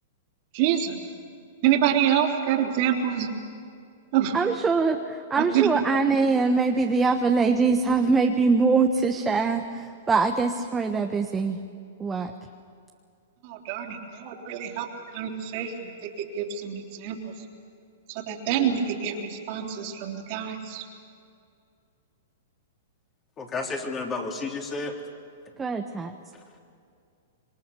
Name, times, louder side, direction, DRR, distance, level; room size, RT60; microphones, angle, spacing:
voice 1, 0.5-1.0 1.6-3.3 4.1-4.4 5.4-5.7 6.0-6.1 13.4-14.9 15.1-17.3 18.1-20.8, right 9 dB, 50° right, 2 dB, 3.3 m, -26 dB
voice 2, 4.3-11.6 12.0-12.3 25.6-26.1, right 4 dB, 15° right, 4 dB, 1.2 m, -23 dB
voice 3, 23.4-25.0, left 3 dB, 25° left, 1 dB, 3.5 m, -31 dB
26.5 x 23.0 x 7.0 m, 2.4 s
hypercardioid pair, 120°, 0 cm